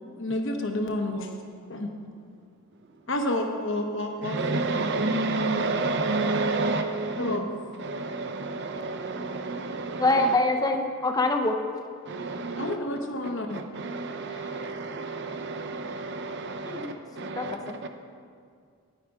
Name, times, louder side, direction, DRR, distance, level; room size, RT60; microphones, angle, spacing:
voice 1, 0.2-1.3 1.7-1.9 3.1-4.4 7.2-7.5 12.6-13.6, left 1 dB, 55° left, 3 dB, 1.0 m, -29 dB
voice 2, 4.2-7.4 7.8-10.3 12.1-12.7 13.5-17.9, right 3 dB, 50° right, 6 dB, 0.6 m, -30 dB
voice 3, 10.0-11.6 16.6-16.9 17.4-17.6, left 2 dB, 15° left, 5 dB, 0.6 m, -24 dB
9.4 x 9.1 x 4.9 m, 2.2 s
head